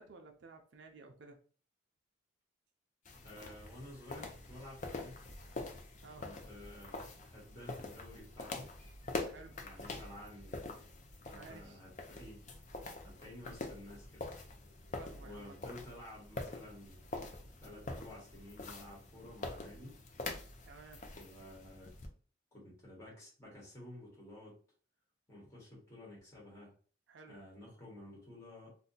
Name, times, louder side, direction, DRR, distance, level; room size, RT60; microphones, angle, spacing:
voice 1, 0.0-1.4 6.0-6.2 9.2-9.6 11.3-11.8 15.0-15.6 20.6-21.0 27.1-27.4, right 4 dB, 65° right, 4 dB, 0.5 m, -54 dB
sound 1, 3.1-22.1, left 2 dB, 40° left, 0.5 m, -45 dB
voice 2, 3.2-5.2 6.1-8.7 9.6-10.7 11.3-12.4 13.0-14.3 15.2-17.0 17.6-20.0 21.1-22.0 22.5-24.6 25.3-26.7 27.3-28.8, left 1 dB, 15° left, -5 dB, 1.1 m, -52 dB
2.7 x 2.2 x 3.8 m, 0.41 s
head